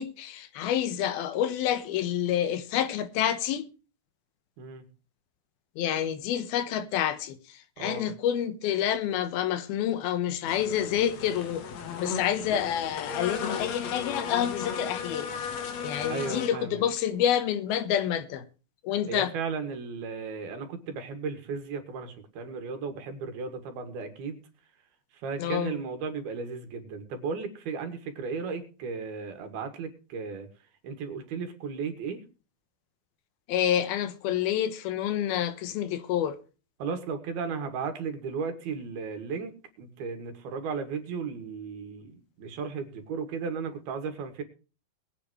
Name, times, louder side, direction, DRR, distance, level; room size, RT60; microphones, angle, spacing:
voice 1, 0.0-3.7 5.8-11.7 12.0-15.3 15.8-18.5 18.8-19.3 25.4-25.8 33.5-36.4, left 10 dB, 80° left, 3.0 m, -28 dB
voice 2, 7.8-8.1 16.1-16.8 19.1-24.4 25.1-30.5 30.8-32.2 36.8-44.4, right 5 dB, 90° right, 3.9 m, -35 dB
sound 1, 10.5-16.5, left 6 dB, 55° left, 2.3 m, -35 dB
22.0 x 8.7 x 3.2 m
omnidirectional pair, 4.3 m